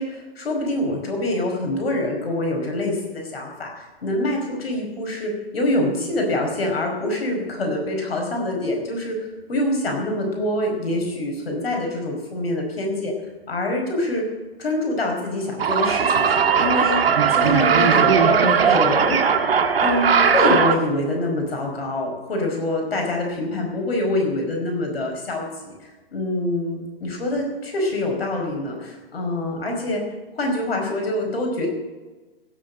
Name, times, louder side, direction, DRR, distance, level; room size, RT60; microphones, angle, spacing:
voice 1, 0.0-9.1 9.5-13.1 13.5-14.2 14.6-17.0 17.3-19.2 19.8-30.0 30.4-31.7, left 1 dB, 75° left, 1 dB, 5.0 m, -25 dB
sound 1, 15.6-20.8, right 6 dB, 70° right, 1.7 m, -18 dB
16.5 x 7.6 x 7.7 m, 1.2 s
figure-of-eight pair, 120°, 31 cm